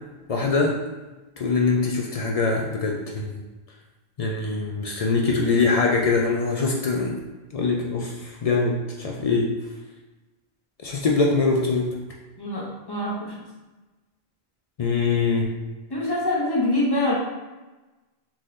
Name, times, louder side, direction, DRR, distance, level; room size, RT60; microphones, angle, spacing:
voice 1, 0.3-0.8 1.4-3.4 4.2-7.2 7.5-9.5 10.8-11.9 14.8-15.6, left 4 dB, 55° left, -1 dB, 0.4 m, -23 dB
voice 2, 12.4-13.3 15.9-17.1, left 1 dB, 25° left, -6 dB, 0.8 m, -24 dB
3.6 x 2.6 x 3.1 m, 1.1 s
omnidirectional pair, 1.1 m